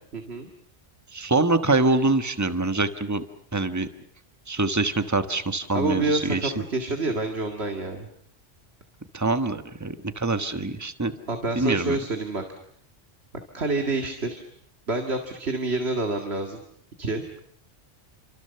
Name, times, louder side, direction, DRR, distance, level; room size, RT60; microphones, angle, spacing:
voice 1, 0.1-0.5 5.7-8.1 11.3-12.4 13.5-14.4 14.9-16.6 17.0-17.2, right 2 dB, 60° right, 5 dB, 2.4 m, -27 dB
voice 2, 1.1-3.2 3.5-3.9 4.5-6.5 9.1-11.1 11.5-12.0, right 3 dB, 15° right, 9 dB, 1.3 m, -24 dB
28.5 x 25.5 x 6.9 m, 0.68 s
omnidirectional pair, 1.2 m